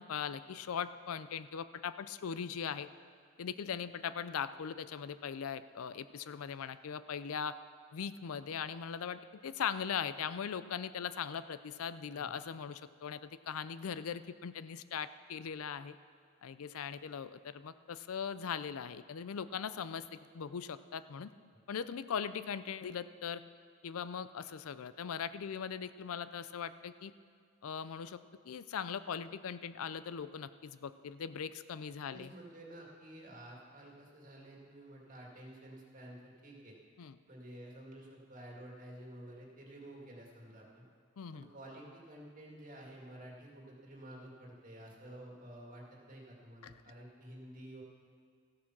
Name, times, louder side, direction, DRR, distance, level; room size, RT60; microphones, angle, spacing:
voice 1, 0.0-2.9 3.4-7.5 7.9-16.0 16.4-21.3 21.7-23.4 23.8-27.1 27.6-28.2 28.5-32.3 37.0-37.2 41.2-41.5 46.6-46.7, left 7 dB, 80° left, 14 dB, 0.4 m, -40 dB
voice 2, 32.1-36.8 37.3-40.8 41.3-47.8, right 1 dB, 40° right, -2 dB, 2.1 m, -51 dB
14.5 x 8.5 x 6.0 m, 2.1 s
head